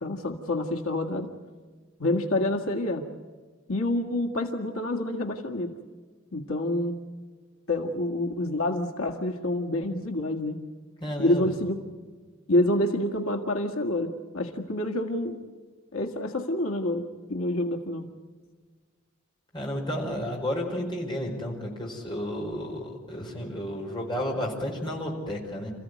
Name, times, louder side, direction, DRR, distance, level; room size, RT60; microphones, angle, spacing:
voice 1, 0.0-1.3 2.0-3.0 3.7-5.7 6.3-7.0 7.7-10.6 11.2-11.8 12.5-15.4 15.9-18.1, left 1 dB, 85° left, 2 dB, 1.9 m, -27 dB
voice 2, 11.0-11.5 19.5-25.7, equal, 20° left, -1 dB, 4.9 m, -32 dB
28.0 x 15.0 x 9.4 m, 1.5 s
head